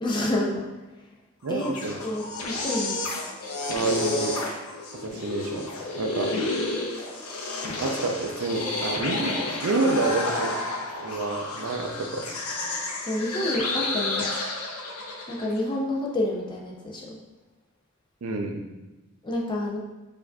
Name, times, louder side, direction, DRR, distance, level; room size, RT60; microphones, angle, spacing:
voice 1, 0.0-0.7 1.5-1.7 2.0-3.1 13.0-14.3 15.3-17.2 19.2-19.8, left 1 dB, 20° left, -1 dB, 0.4 m, -28 dB
sound 1, 1.4-15.6, left 2 dB, 80° left, 0.5 m, -31 dB
voice 2, 1.4-1.9 3.7-4.4 5.0-5.7 6.0-6.4 7.8-10.5 11.0-12.3 18.2-18.6, right 3 dB, 75° right, 3 dB, 0.4 m, -28 dB
4.6 x 2.5 x 2.2 m, 1.1 s
head